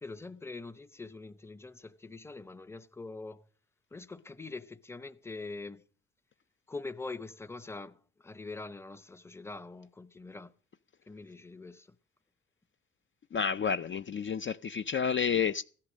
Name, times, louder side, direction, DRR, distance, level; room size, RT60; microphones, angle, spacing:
voice 1, 0.0-3.5 3.9-5.8 6.7-10.5 11.1-11.9, left 3 dB, 10° left, 0.8 m, -44 dB
voice 2, 13.3-15.6, left 6 dB, 40° left, 0.6 m, -30 dB
16.0 x 11.5 x 6.3 m
cardioid pair, 90°, 30 cm